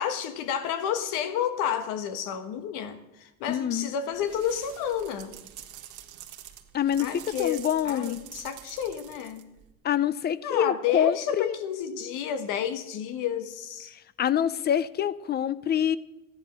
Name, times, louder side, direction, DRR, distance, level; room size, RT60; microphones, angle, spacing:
voice 1, 0.0-5.3 7.0-9.5 10.4-13.9, left 8 dB, 85° left, 9 dB, 1.5 m, -30 dB
voice 2, 3.5-3.9 6.7-8.2 9.8-11.5 14.2-16.0, left 9 dB, 30° left, 18 dB, 0.5 m, -26 dB
sound 1, 4.1-9.7, right 12 dB, 75° right, 1.7 m, -46 dB
14.5 x 10.5 x 6.2 m, 0.94 s
cardioid pair, 125°, 31 cm